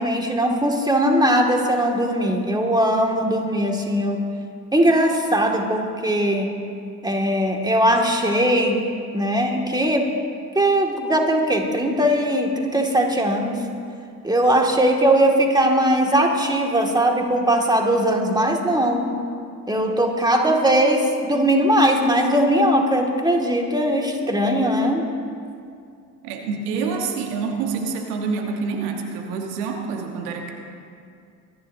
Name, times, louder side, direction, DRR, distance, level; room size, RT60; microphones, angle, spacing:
voice 1, 0.0-4.2 4.7-6.5 7.0-8.8 9.1-10.1 10.6-13.6 14.2-19.1 19.7-25.1, right 1 dB, 10° right, 1 dB, 2.1 m, -20 dB
voice 2, 26.2-30.5, right 5 dB, 75° right, 3 dB, 1.4 m, -27 dB
25.5 x 10.5 x 2.7 m, 2.3 s
hypercardioid pair, 55°, 45 cm